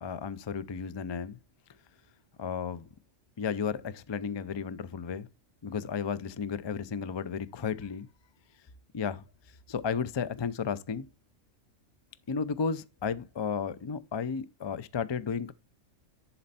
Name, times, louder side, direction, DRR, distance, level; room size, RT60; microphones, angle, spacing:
voice 1, 0.0-1.4 2.4-2.9 3.4-5.3 5.6-8.1 8.9-9.2 9.7-11.1 12.3-15.5, left 6 dB, 45° left, 0.3 m, -33 dB
11.0 x 4.4 x 4.1 m
omnidirectional pair, 1.4 m